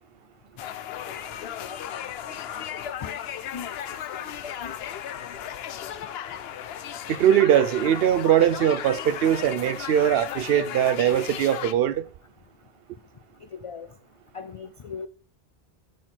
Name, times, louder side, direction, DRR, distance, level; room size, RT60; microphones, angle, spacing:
sound 1, 0.6-11.7, left 10 dB, 75° left, 0.8 m, -35 dB
voice 1, 1.0-1.8 2.5-3.2 3.5-3.8 4.1-4.7 13.5-13.9 14.3-15.1, left 6 dB, 60° left, 0.3 m, -39 dB
voice 2, 7.1-12.0, right 10 dB, 70° right, 0.8 m, -21 dB
9.2 x 4.5 x 4.4 m
omnidirectional pair, 1.1 m